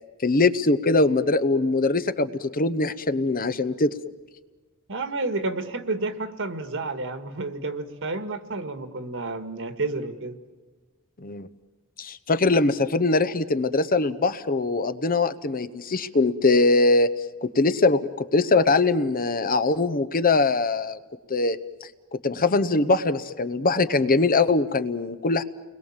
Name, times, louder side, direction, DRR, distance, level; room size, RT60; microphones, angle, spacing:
voice 1, 0.2-3.9 11.2-11.5 12.0-17.1 17.4-21.0 21.3-21.6 22.1-25.4, left 3 dB, 40° left, 12 dB, 0.9 m, -22 dB
voice 2, 4.9-10.4, right 3 dB, 60° right, 9 dB, 1.9 m, -30 dB
30.0 x 21.5 x 7.3 m, 1.3 s
head